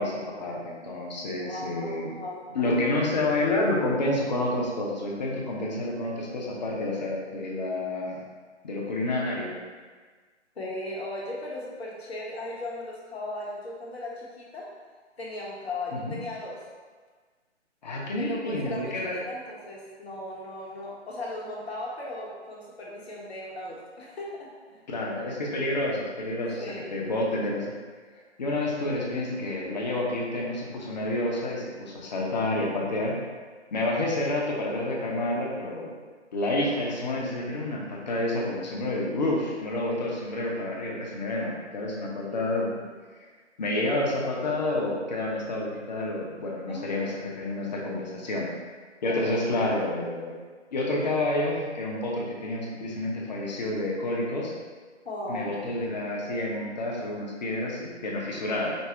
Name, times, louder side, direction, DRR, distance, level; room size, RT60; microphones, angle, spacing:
voice 1, 0.0-2.1 2.5-8.2 8.6-9.5 15.9-16.2 17.8-19.2 24.9-26.6 26.9-27.7 28.4-33.2 33.7-35.9 36.3-42.7 43.6-48.5 49.0-50.3 50.7-54.5 55.3-58.8, left 1 dB, 40° left, -2 dB, 0.7 m, -29 dB
voice 2, 1.4-2.6 10.6-14.6 15.2-16.6 18.2-24.8 26.6-27.0 42.2-42.9 46.7-47.1 49.1-49.9 55.0-56.0, left 1 dB, 60° left, -4 dB, 1.1 m, -37 dB
5.2 x 2.1 x 3.3 m, 1.5 s
figure-of-eight pair, 140°, 35 cm